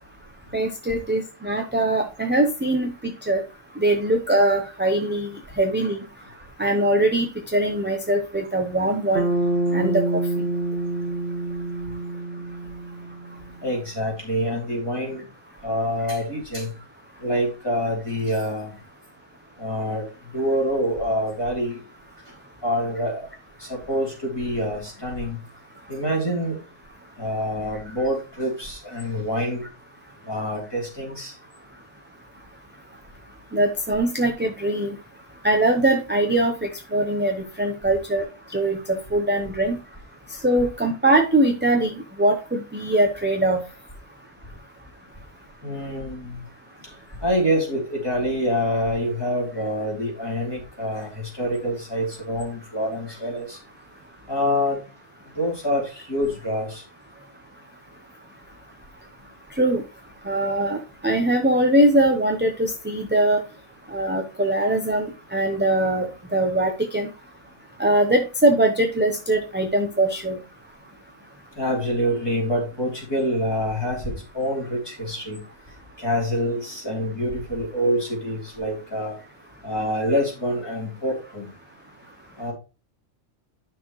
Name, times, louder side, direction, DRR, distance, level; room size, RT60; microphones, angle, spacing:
voice 1, 0.5-3.4 3.8-5.3 5.6-6.0 6.6-9.3 9.7-10.2 33.5-35.0 35.4-38.3 38.5-39.8 40.4-43.6 59.6-59.8 60.3-60.8 61.0-63.4 63.9-66.1 66.3-67.1 67.8-70.4, right 1 dB, 10° right, 3 dB, 0.6 m, -21 dB
Bass guitar, 9.1-13.5, right 2 dB, 45° right, 1.3 m, -26 dB
voice 2, 13.6-15.2 15.6-16.7 17.2-18.7 19.6-20.0 20.3-21.8 22.6-23.2 23.6-25.4 25.9-26.6 27.2-29.7 30.3-31.3 45.6-46.4 47.2-53.6 54.3-54.8 55.4-56.8 71.6-75.4 76.0-79.1 79.6-81.5 82.4-82.5, equal, 20° left, -2 dB, 3.2 m, -26 dB
10.0 x 6.0 x 3.1 m, 0.30 s
omnidirectional pair, 1.4 m